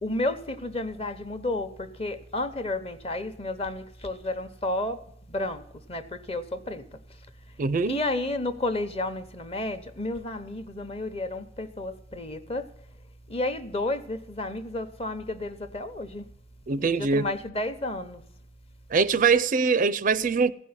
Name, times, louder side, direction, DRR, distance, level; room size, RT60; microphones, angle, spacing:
voice 1, 0.0-5.0 5.3-5.6 5.9-6.8 7.8-12.7 13.3-16.3 16.8-18.2, left 2 dB, 30° left, 0.9 m, -31 dB
voice 2, 7.6-8.0 16.7-17.3 18.9-20.5, right 5 dB, 45° right, 0.4 m, -23 dB
16.0 x 5.4 x 9.6 m
head